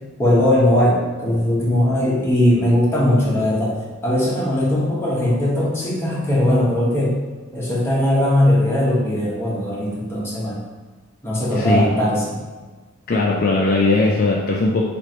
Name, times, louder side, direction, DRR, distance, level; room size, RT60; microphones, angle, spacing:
voice 1, 0.2-3.7 4.0-7.1 7.5-10.6 11.2-12.4, left 1 dB, 10° left, -7 dB, 1.1 m, -19 dB
voice 2, 11.5-11.9 13.1-14.8, left 3 dB, 45° left, -2 dB, 0.4 m, -18 dB
3.2 x 2.5 x 4.2 m, 1.4 s
head